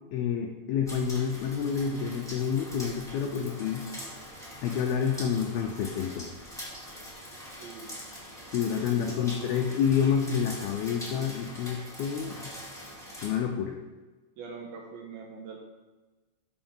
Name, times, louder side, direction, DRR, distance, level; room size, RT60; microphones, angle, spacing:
voice 1, 0.1-3.9 4.6-6.3 8.5-12.5 13.2-13.8, left 7 dB, 90° left, 3 dB, 2.1 m, -28 dB
sound 1, 0.9-13.4, equal, 5° left, 0.5 m, -43 dB
voice 2, 7.6-7.9 9.1-9.7 11.6-11.9 14.4-15.7, right 5 dB, 75° right, 0 dB, 2.3 m, -44 dB
13.0 x 6.4 x 3.6 m, 1.2 s
omnidirectional pair, 5.2 m